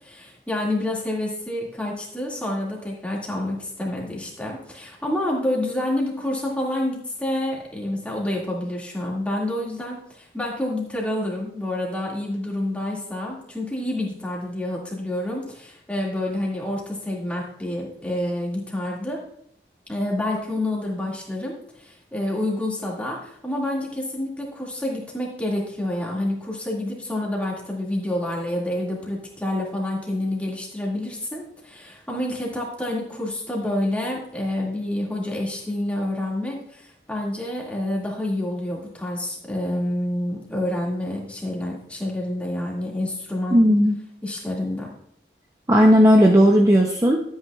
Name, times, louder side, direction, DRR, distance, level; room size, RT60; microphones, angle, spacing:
voice 1, 0.0-19.2 19.9-43.8 44.2-44.9, left 1 dB, 10° left, -3 dB, 2.0 m, -28 dB
voice 2, 43.5-44.0 45.7-47.2, equal, 20° right, 0 dB, 0.6 m, -15 dB
12.5 x 8.6 x 2.4 m, 0.71 s
head